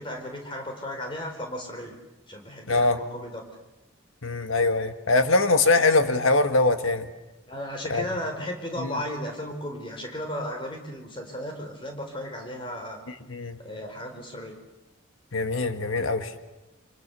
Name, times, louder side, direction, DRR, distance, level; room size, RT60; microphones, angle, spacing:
voice 1, 0.0-2.0 2.3-3.4 7.5-13.0 13.6-14.5, equal, 25° left, 3 dB, 4.3 m, -35 dB
voice 2, 2.7-3.0 4.2-7.1 7.9-8.0 8.8-9.0 13.3-13.6 15.3-16.3, left 3 dB, 90° left, 8 dB, 1.8 m, -22 dB
28.5 x 26.0 x 7.0 m, 1.0 s
head